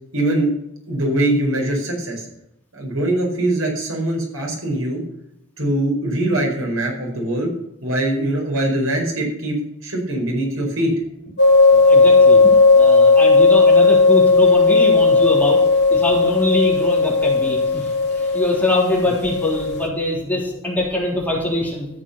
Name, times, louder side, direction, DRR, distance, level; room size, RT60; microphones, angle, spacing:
voice 1, 0.1-0.5 0.9-2.3 2.7-5.0 5.6-7.5 7.8-10.9, right 1 dB, 80° right, 1 dB, 4.7 m, -22 dB
sound 1, 11.4-19.9, left 3 dB, 55° left, 2.5 m, -14 dB
voice 2, 11.7-12.4 12.7-15.6 15.9-21.9, left 1 dB, 10° left, -3 dB, 3.6 m, -23 dB
14.0 x 7.4 x 6.8 m, 0.84 s
head